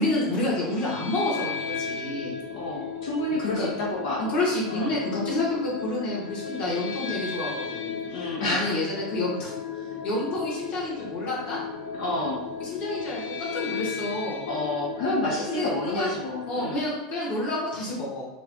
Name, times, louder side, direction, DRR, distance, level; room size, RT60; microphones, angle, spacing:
voice 1, 0.0-2.3 3.4-3.7 4.2-9.5 10.0-11.6 12.6-14.5 15.5-16.2 16.5-18.2, left 1 dB, 40° left, -5 dB, 1.5 m, -29 dB
sound 1, 0.6-16.8, left 6 dB, 85° left, 0.5 m, -35 dB
voice 2, 2.5-4.2 4.7-5.0 8.0-8.7 12.0-12.4 14.5-16.9, left 1 dB, 70° left, -4 dB, 1.3 m, -29 dB
4.6 x 2.5 x 3.5 m, 1.1 s
supercardioid pair, 160°, 4 cm